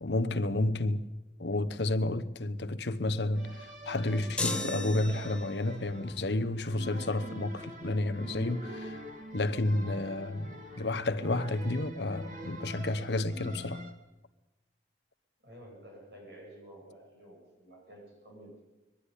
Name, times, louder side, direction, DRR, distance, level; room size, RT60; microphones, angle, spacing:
voice 1, 0.0-1.1 1.4-9.0 9.3-13.8, left 2 dB, 70° left, 1.0 m, -31 dB
sound 1, 3.3-13.9, right 1 dB, 45° right, 2.1 m, -44 dB
sound 2, 4.4-5.7, left 2 dB, 5° left, 1.3 m, -35 dB
voice 2, 15.4-18.6, right 1 dB, 65° right, 8.0 m, -51 dB
22.0 x 12.0 x 10.0 m
head